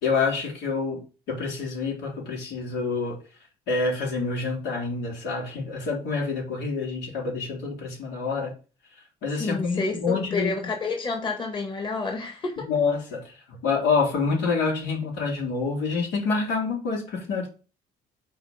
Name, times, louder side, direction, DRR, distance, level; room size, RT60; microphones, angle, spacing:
voice 1, 0.0-1.0 1.3-3.2 3.7-8.5 9.2-10.7 12.6-17.5, left 4 dB, 85° left, 3.7 m, -27 dB
voice 2, 9.4-12.7, left 3 dB, 30° left, 1.8 m, -29 dB
6.6 x 4.2 x 5.8 m
cardioid pair, 110°, 17 cm